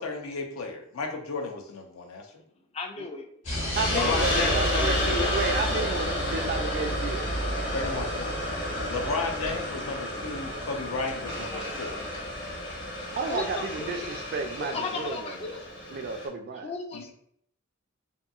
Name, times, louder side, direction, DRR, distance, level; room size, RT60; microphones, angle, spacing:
voice 1, 0.0-2.3 3.9-5.3 7.7-8.4 8.9-12.0 16.9-17.0, left 4 dB, 85° left, 3 dB, 0.5 m, -33 dB
voice 2, 2.7-3.3 3.7-4.9 11.5-12.1 13.3-14.1 14.6-15.6 16.6-17.1, left 4 dB, 30° left, 5 dB, 0.3 m, -36 dB
sound 1, 3.4-14.1, equal, 65° left, 1.4 m, -33 dB
Hiss, 3.7-16.3, left 1 dB, 50° left, 0.9 m, -32 dB
voice 3, 3.7-5.0 5.3-7.3 9.0-9.2 13.2-15.6 15.9-16.7, right 4 dB, 50° right, 5 dB, 0.3 m, -32 dB
2.8 x 2.6 x 2.3 m, 0.68 s
head